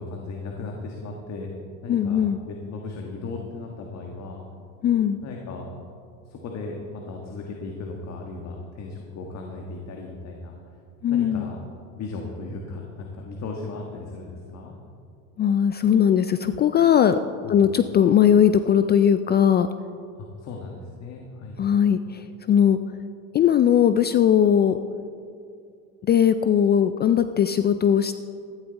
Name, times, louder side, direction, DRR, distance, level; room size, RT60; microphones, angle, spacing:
voice 1, 0.0-1.5 1.8-2.2 2.5-4.4 5.2-5.7 6.3-10.5 11.1-11.6 11.9-14.7 17.4-17.6 20.2-21.6, left 3 dB, 45° left, 1 dB, 1.6 m, -36 dB
voice 2, 1.9-2.4 4.8-5.2 11.0-11.5 15.4-17.2 17.5-19.7 21.6-22.8 23.3-24.8 26.1-28.2, left 9 dB, 30° left, 11 dB, 0.4 m, -19 dB
14.0 x 11.5 x 4.0 m, 2.3 s
supercardioid pair, 110°, 36 cm